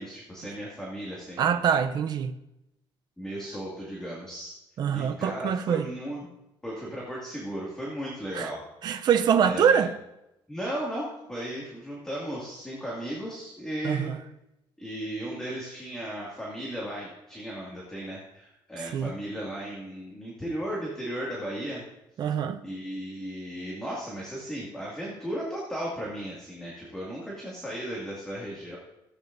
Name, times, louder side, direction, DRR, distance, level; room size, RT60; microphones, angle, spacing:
voice 1, 0.0-1.6 3.2-4.5 4.9-6.3 6.6-8.6 9.4-9.8 10.5-14.1 14.8-21.8 22.6-28.8, equal, 5° left, 2.3 m, -36 dB
voice 2, 1.4-2.3 4.8-5.9 8.3-8.5 8.8-9.9 13.8-14.2 18.8-19.1 22.2-22.6, right 8 dB, 45° right, 0.6 m, -24 dB
16.0 x 8.8 x 2.7 m
cardioid pair, 150°, 10 cm